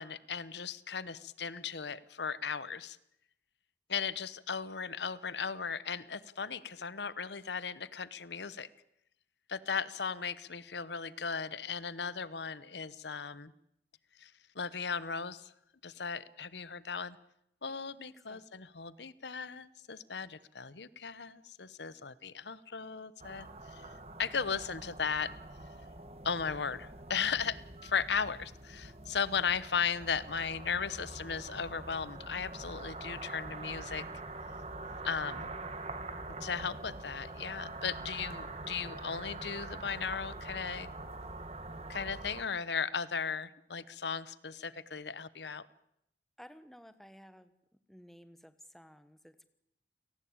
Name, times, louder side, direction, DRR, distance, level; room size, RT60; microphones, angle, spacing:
voice 1, 0.0-3.0 3.9-8.7 9.5-13.5 14.2-15.5 15.8-17.2 17.6-23.9 24.2-25.4 26.2-34.0 35.0-35.5 36.4-40.9 41.9-45.7, left 6 dB, 80° left, 18 dB, 1.0 m, -36 dB
voice 2, 17.7-18.5 46.4-47.5 47.9-49.5, equal, ahead, 11 dB, 1.3 m, -55 dB
sound 1, 23.2-42.4, right 2 dB, 35° right, 2.0 m, -45 dB
29.5 x 18.5 x 8.8 m, 0.80 s
head